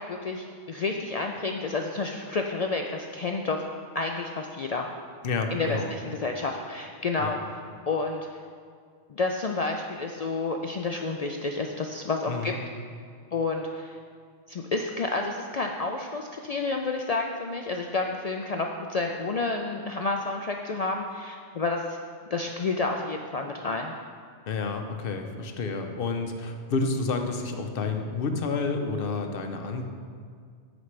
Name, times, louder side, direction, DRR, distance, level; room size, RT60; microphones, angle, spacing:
voice 1, 0.0-3.6 3.9-4.9 5.5-8.4 9.1-12.5 13.3-14.0 14.5-22.0 22.3-23.9, left 3 dB, 75° left, 2 dB, 0.3 m, -30 dB
voice 2, 5.2-5.9 7.2-7.3 12.3-12.6 24.5-29.8, left 4 dB, 55° left, 5 dB, 0.8 m, -30 dB
14.0 x 5.2 x 3.2 m, 2.1 s
omnidirectional pair, 1.2 m